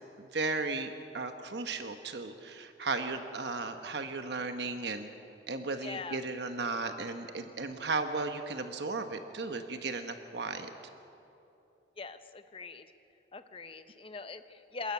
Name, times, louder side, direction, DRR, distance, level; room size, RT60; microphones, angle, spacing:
voice 1, 0.2-5.1 5.5-10.7, right 3 dB, 70° right, 7 dB, 1.1 m, -35 dB
voice 2, 5.8-6.2 12.0-12.9 13.3-14.9, left 4 dB, 30° left, 9 dB, 0.9 m, -41 dB
26.5 x 13.0 x 9.5 m, 2.9 s
head